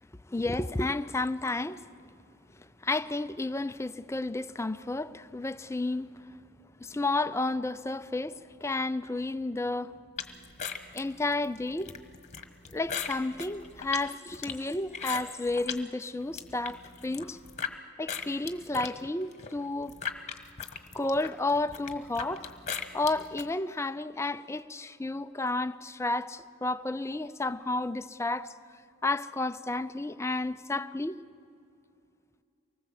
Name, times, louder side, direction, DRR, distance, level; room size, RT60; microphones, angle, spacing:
voice 1, 0.3-1.8 2.5-6.4 6.8-9.9 10.9-11.9 12.7-17.4 18.0-19.9 20.9-22.5 22.9-28.5 29.0-31.2, left 2 dB, 10° left, 0.5 m, -31 dB
sound 1, 10.2-15.8 16.2-17.7 18.1-23.5, left 6 dB, 30° left, 1.4 m, -38 dB
24.5 x 19.5 x 7.8 m
head